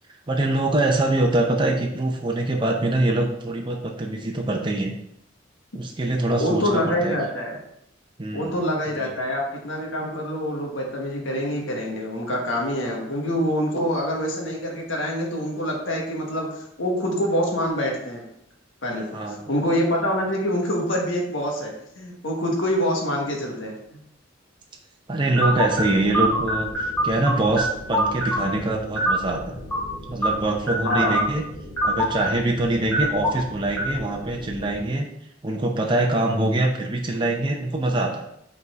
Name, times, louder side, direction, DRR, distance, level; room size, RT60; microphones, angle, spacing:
voice 1, 0.3-4.9 5.7-7.2 8.2-8.5 9.0-9.1 19.1-19.4 25.1-29.6 30.1-31.5 31.8-35.1 35.4-38.2, right 2 dB, 25° right, 1 dB, 0.6 m, -24 dB
voice 2, 6.4-7.6 8.3-18.2 18.8-24.0 30.8-31.2, equal, 70° left, 0 dB, 1.3 m, -26 dB
sound 1, 25.4-34.9, right 1 dB, 10° left, 1.8 m, -27 dB
5.2 x 4.1 x 4.7 m, 0.77 s
head